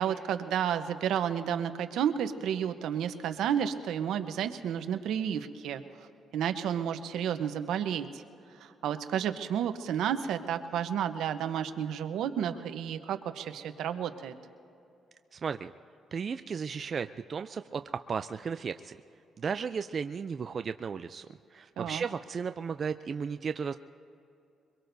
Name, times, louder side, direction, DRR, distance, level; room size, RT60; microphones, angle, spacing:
voice 1, 0.0-8.2 8.5-14.4 21.8-22.0, right 9 dB, 80° right, 9 dB, 0.9 m, -31 dB
voice 2, 15.3-15.7 16.1-17.8 18.1-19.0 19.4-21.3 21.5-23.8, right 6 dB, 45° right, 10 dB, 0.4 m, -34 dB
24.0 x 22.5 x 2.7 m, 2.7 s
cardioid pair, 90°, 0 cm